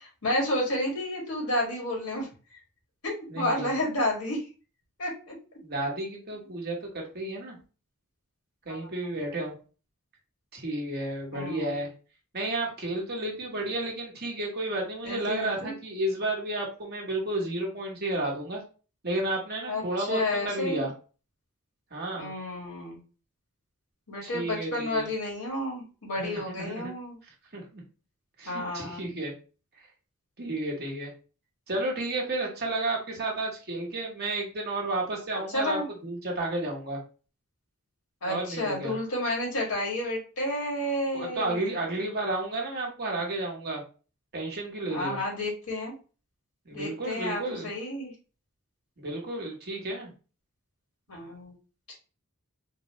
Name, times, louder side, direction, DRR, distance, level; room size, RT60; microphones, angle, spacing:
voice 1, 0.0-2.3 3.0-4.5 5.0-5.3 8.7-8.8 11.3-11.8 15.0-15.8 19.7-20.9 22.1-23.0 24.1-27.2 28.5-29.2 35.5-35.9 38.2-41.7 44.9-45.9 46.7-48.1 51.1-51.5, left 1 dB, 75° left, -2 dB, 1.7 m, -31 dB
voice 2, 3.3-3.7 5.6-7.6 8.7-9.5 10.5-11.9 12.3-18.6 19.0-20.9 21.9-22.3 24.2-25.1 26.2-26.9 27.5-27.8 28.4-29.3 30.4-31.1 31.7-37.0 38.3-38.9 41.1-43.8 44.3-45.2 46.7-47.7 49.0-50.1, right 2 dB, 45° right, -1 dB, 1.2 m, -32 dB
3.9 x 2.2 x 2.9 m, 0.35 s
head